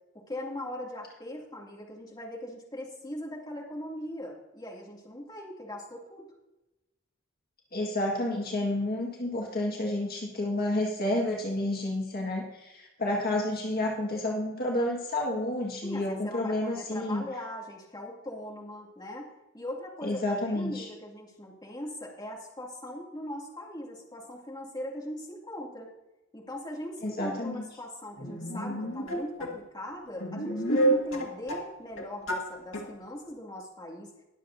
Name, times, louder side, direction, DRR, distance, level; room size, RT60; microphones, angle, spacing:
voice 1, 0.3-6.3 15.8-25.9 26.3-34.1, left 1 dB, 20° left, -3 dB, 2.5 m, -40 dB
voice 2, 7.7-17.3 20.0-20.9 27.0-27.6, left 1 dB, 50° left, -2 dB, 1.8 m, -30 dB
sound 1, 28.2-29.5 30.2-31.7 32.0-32.5 32.7-32.8, right 1 dB, 75° left, 1.9 m, -29 dB
21.0 x 7.6 x 2.7 m, 0.97 s
head